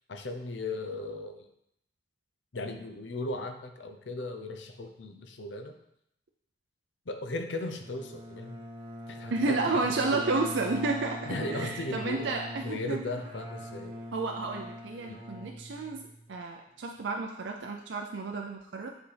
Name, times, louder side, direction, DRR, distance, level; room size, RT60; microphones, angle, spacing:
voice 1, 0.1-1.5 2.5-5.7 7.1-8.6 9.1-9.8 11.3-12.3 12.6-14.0 15.1-15.2, left 2 dB, 80° left, 6 dB, 0.7 m, -37 dB
Bowed string instrument, 7.8-16.3, left 1 dB, 30° right, 1.0 m, -42 dB
voice 2, 9.3-13.0 14.1-18.9, right 3 dB, 80° right, 2 dB, 0.5 m, -31 dB
8.2 x 4.0 x 3.4 m, 0.75 s
head